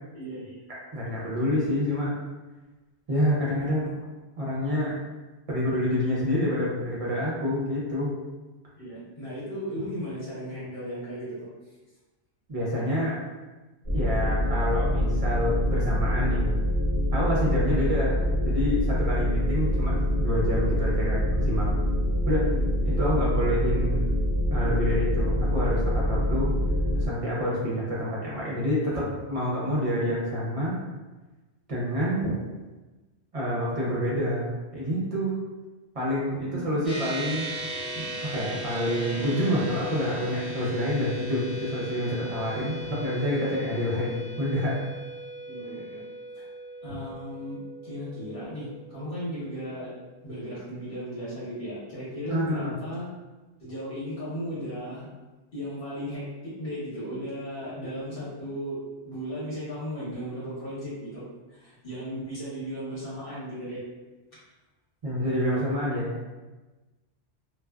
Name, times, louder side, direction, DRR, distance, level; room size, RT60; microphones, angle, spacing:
voice 1, 0.1-0.5 8.8-11.5 17.6-18.0 22.3-23.3 34.1-34.2 36.4-36.8 42.2-42.3 45.5-46.0 46.3-46.5 46.8-50.0 50.2-53.1 53.6-55.1 55.5-58.8 59.0-61.2 61.5-63.8, equal, 60° left, -10 dB, 1.1 m, -36 dB
voice 2, 0.9-2.1 3.1-3.9 4.4-5.0 5.5-8.1 12.5-13.2 13.9-16.5 17.1-18.2 18.4-21.7 22.3-22.5 22.9-24.0 24.5-26.5 27.0-30.7 31.7-32.3 33.3-35.3 35.9-37.5 37.9-44.8 52.3-52.7 65.0-66.3, equal, 40° right, -6 dB, 0.6 m, -27 dB
sound 1, 13.8-27.1, equal, 30° left, 0.9 m, -25 dB
sound 2, 36.8-50.5, right 1 dB, ahead, 0.6 m, -38 dB
2.4 x 2.3 x 2.2 m, 1.2 s
omnidirectional pair, 1.1 m